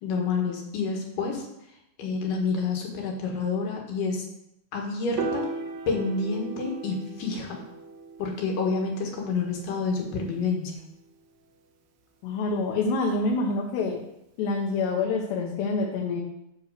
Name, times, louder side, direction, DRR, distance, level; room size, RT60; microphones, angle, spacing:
voice 1, 0.0-1.4 2.0-4.2 4.7-5.5 5.9-7.6 8.2-10.7, left 4 dB, 60° left, 0 dB, 2.7 m, -28 dB
Piano, 5.2-11.5, right 4 dB, 70° right, 2.2 m, -38 dB
voice 2, 12.2-14.0 14.4-16.2, left 3 dB, 75° left, -1 dB, 3.1 m, -26 dB
10.5 x 4.5 x 6.7 m, 0.82 s
omnidirectional pair, 5.0 m